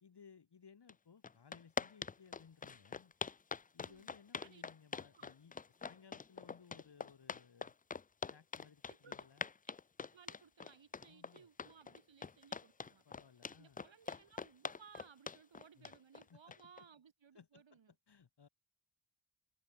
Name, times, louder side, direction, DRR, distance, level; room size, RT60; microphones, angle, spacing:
voice 1, 0.0-3.1 3.7-5.5 5.8-7.7 8.3-9.5 11.1-11.5 13.0-13.8 15.8-15.9 16.3-16.6 17.3-17.8 18.1-18.5, left 6 dB, 55° left, 2.2 m, -62 dB
sound 1, 0.9-1.0 1.2-16.8, left 5 dB, 20° left, 0.3 m, -44 dB
voice 2, 8.9-9.3 9.7-9.8 10.1-13.0 13.6-17.9, right 6 dB, 65° right, 3.1 m, -62 dB
cardioid pair, 65°, 49 cm